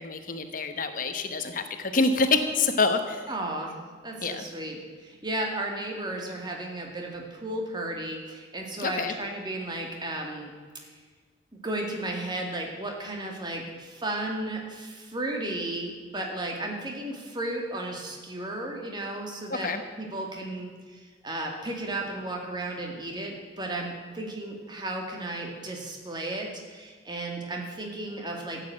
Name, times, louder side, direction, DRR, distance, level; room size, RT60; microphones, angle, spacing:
voice 1, 0.0-3.2 4.2-4.4 8.8-9.1 19.5-19.8, left 3 dB, 45° left, 8 dB, 1.0 m, -26 dB
voice 2, 3.3-3.8 4.0-10.5 11.5-19.7 20.0-28.6, right 1 dB, 25° right, 1 dB, 2.1 m, -34 dB
12.5 x 8.4 x 9.0 m, 1.5 s
head